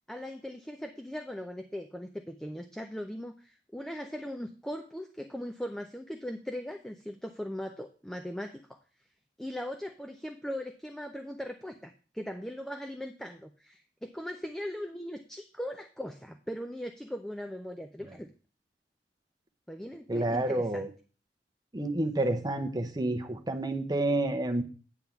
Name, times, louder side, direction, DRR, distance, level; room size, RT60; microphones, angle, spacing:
voice 1, 0.1-8.8 9.4-18.3 19.7-20.9, equal, 5° left, 5 dB, 0.5 m, -39 dB
voice 2, 20.1-20.9 21.7-24.6, right 2 dB, 25° right, 5 dB, 0.8 m, -29 dB
9.2 x 3.6 x 7.0 m, 0.37 s
head